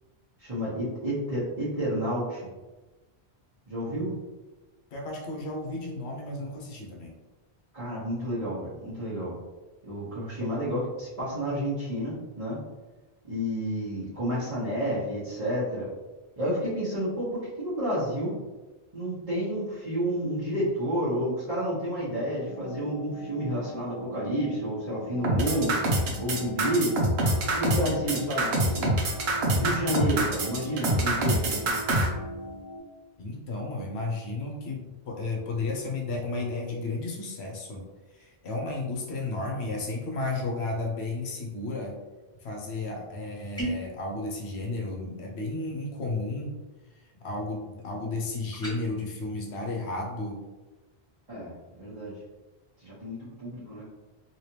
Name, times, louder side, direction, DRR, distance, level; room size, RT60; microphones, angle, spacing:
voice 1, 0.4-2.5 3.7-4.1 7.7-9.3 9.9-12.6 13.2-15.9 16.4-18.4 18.9-25.8 26.2-26.9 27.5-28.9 29.5-31.8 51.3-52.2 52.8-53.8, equal, 35° right, -11 dB, 1.2 m, -30 dB
voice 2, 4.9-7.2 33.2-37.8 38.1-42.0 42.4-46.6 47.2-50.4, left 2 dB, 80° left, 0 dB, 1.0 m, -33 dB
sound 1, 22.5-32.8, equal, 40° left, 0.9 m, -41 dB
sound 2, 25.2-32.1, right 2 dB, 70° right, 1.0 m, -25 dB
sound 3, 43.5-43.9 48.5-48.8, right 1 dB, 5° left, 0.7 m, -32 dB
3.2 x 2.9 x 2.9 m, 1.2 s
omnidirectional pair, 1.1 m